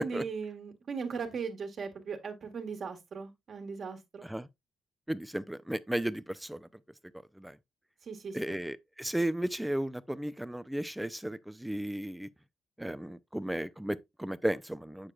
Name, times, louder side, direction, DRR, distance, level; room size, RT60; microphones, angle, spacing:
voice 1, 0.0-4.3 8.1-8.6, right 5 dB, 50° right, 1.5 m, -38 dB
voice 2, 5.1-6.7 7.4-7.6 8.3-12.3 12.8-15.1, right 1 dB, 5° right, 0.4 m, -34 dB
7.4 x 6.5 x 2.3 m
cardioid pair, 90°, 0 cm